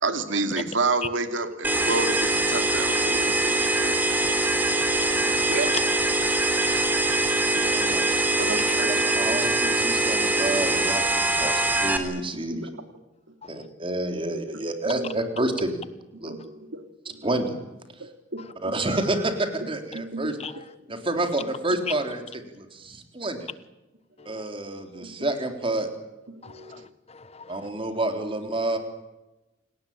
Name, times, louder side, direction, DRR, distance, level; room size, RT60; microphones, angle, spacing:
voice 1, 0.0-4.0 5.5-5.7 8.4-9.0 11.5-11.6 12.5-12.8 14.8-15.1 16.3-17.3 18.0-19.0 19.9-20.3 24.2-24.4 25.0-25.3 26.4-26.9, right 3 dB, 80° right, 8 dB, 2.7 m, -31 dB
sound 1, 1.6-12.0, right 2 dB, 10° right, 3.2 m, -23 dB
voice 2, 4.7-5.6 6.2-7.6 8.5-8.6 13.4-13.7 18.4-18.5 20.4-20.6 21.9-22.0 24.2-24.5 26.4-27.7, left 6 dB, 35° left, 14 dB, 1.2 m, -42 dB
voice 3, 7.5-8.1 8.8-12.5 13.5-15.8 16.2-16.3 17.2-17.5 18.6-20.4 20.9-22.2 22.6-23.5 24.3-25.9 27.5-28.8, right 2 dB, 30° right, 5 dB, 3.7 m, -29 dB
29.0 x 19.0 x 8.8 m, 1.0 s
head